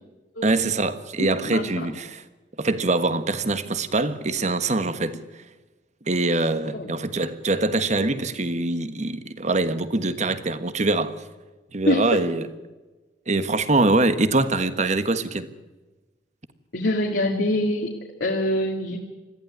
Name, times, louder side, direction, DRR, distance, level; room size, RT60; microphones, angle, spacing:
voice 1, 0.4-2.2 2.6-5.2 6.1-11.1 11.7-12.5 13.3-15.5, right 2 dB, 40° right, 1.4 m, -23 dB
voice 2, 1.2-1.9 6.7-6.9 11.9-12.3 16.7-17.9 18.2-19.0, left 1 dB, 75° left, 2.4 m, -24 dB
21.0 x 14.5 x 9.6 m
head